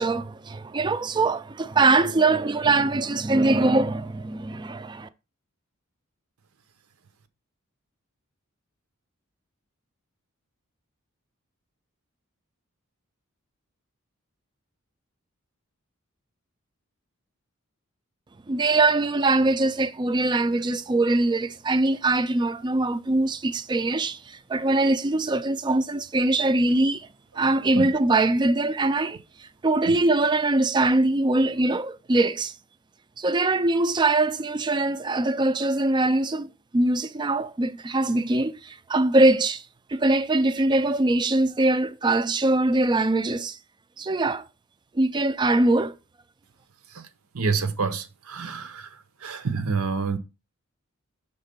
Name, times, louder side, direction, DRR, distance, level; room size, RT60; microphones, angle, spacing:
voice 1, 0.0-5.1 18.5-27.1 27.4-32.5 33.2-39.6 39.9-43.6 44.0-44.4 44.9-46.0, right 2 dB, 20° right, 0.3 m, -22 dB
voice 2, 47.3-48.9 49.2-50.2, right 4 dB, 80° right, 0.7 m, -27 dB
5.6 x 3.7 x 5.2 m
head